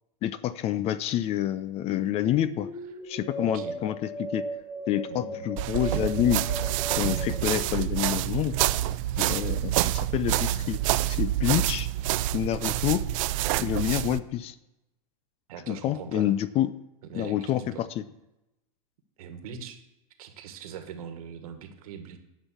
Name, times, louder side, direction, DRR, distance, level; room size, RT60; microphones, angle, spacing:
voice 1, 0.2-2.7 3.0-4.4 4.9-6.4 6.9-8.5 9.2-10.8 11.1-11.9 12.3-13.0 13.6-14.5 15.7-16.7 17.1-18.0, left 12 dB, 30° left, 16 dB, 0.5 m, -28 dB
sound 1, 1.8-8.3, equal, 15° left, 2.5 m, -38 dB
voice 2, 3.4-3.8 5.1-5.5 15.5-16.4 17.1-17.9 19.2-19.8 20.2-22.2, right 7 dB, 75° right, 7 dB, 1.6 m, -41 dB
sound 2, 5.6-14.2, right 15 dB, 60° right, 0.5 m, -27 dB
10.5 x 5.5 x 7.4 m, 0.92 s
supercardioid pair, 130°, 19 cm